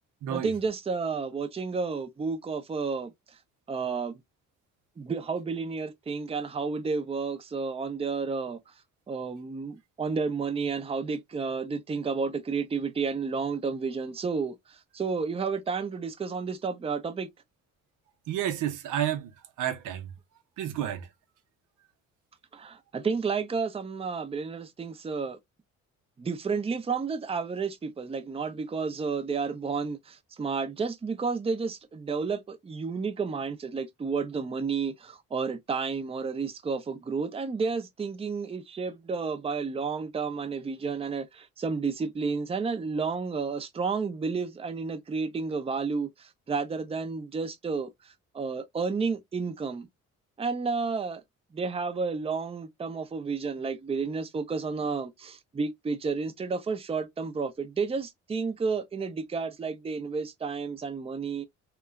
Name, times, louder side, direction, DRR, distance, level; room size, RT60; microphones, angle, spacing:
voice 1, 0.3-3.1 3.7-4.2 5.0-8.6 9.1-17.3 22.5-25.4 26.2-49.9 50.4-51.2 51.5-61.5, right 5 dB, 20° right, 0.5 m, -31 dB
voice 2, 18.3-19.3 19.6-20.1 20.6-21.1, right 10 dB, 85° right, 0.7 m, -30 dB
2.9 x 2.1 x 2.4 m
cardioid pair, 90°, 30 cm